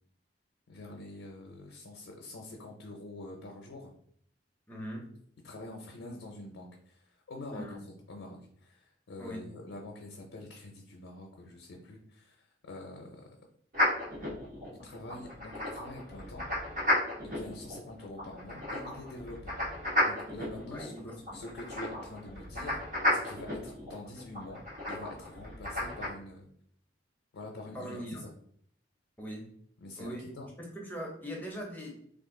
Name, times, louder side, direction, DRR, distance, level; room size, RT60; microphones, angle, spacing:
voice 1, 0.7-3.9 5.4-13.3 14.7-16.5 17.2-19.6 20.0-20.9 21.3-22.8 23.1-24.6 24.9-26.5 27.3-28.3 29.8-30.5, left 2 dB, 85° left, 1 dB, 0.6 m, -46 dB
voice 2, 4.7-5.1 7.5-7.8 9.2-9.5 20.6-21.2 27.7-28.2 29.2-29.5 30.0-30.3 30.7-31.9, equal, 10° left, -1 dB, 0.6 m, -40 dB
sound 1, 13.7-26.1, left 1 dB, 45° right, 1.2 m, -34 dB
2.5 x 2.4 x 3.7 m, 0.64 s
head